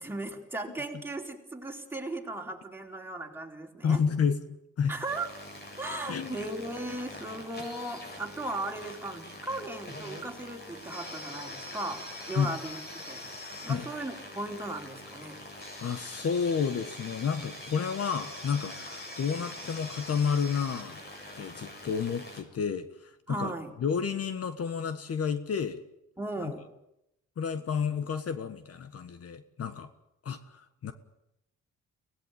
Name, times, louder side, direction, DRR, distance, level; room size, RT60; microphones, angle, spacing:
voice 1, 0.0-4.0 4.9-5.3 5.8-12.8 13.1-13.3 13.6-15.4 23.3-23.7 26.2-26.7, right 2 dB, 5° right, 1 dB, 4.2 m, -37 dB
voice 2, 3.8-4.9 6.1-6.3 12.3-12.5 13.7-13.9 15.8-21.0 21.4-23.5 23.8-25.8 26.4-26.5 27.4-29.9 30.2-30.9, left 6 dB, 50° left, 10 dB, 1.5 m, -31 dB
sound 1, 4.9-22.4, left 1 dB, 35° left, 7.0 m, -43 dB
23.5 x 18.0 x 9.3 m, 0.86 s
cardioid pair, 90°, 30 cm